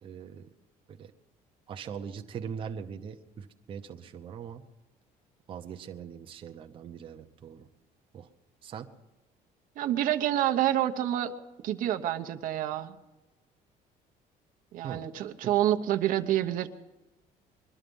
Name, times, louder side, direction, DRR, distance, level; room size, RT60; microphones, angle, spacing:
voice 1, 0.0-0.5 0.9-1.1 1.7-4.7 5.5-7.7 8.1-8.3 8.6-8.9 14.8-15.1 15.4-15.6, right 7 dB, 35° right, 4 dB, 0.9 m, -41 dB
voice 2, 9.8-11.3 11.6-12.9 14.7-16.7, right 12 dB, 60° right, 7 dB, 0.9 m, -28 dB
22.0 x 12.5 x 5.4 m, 1.1 s
cardioid pair, 170°, 16 cm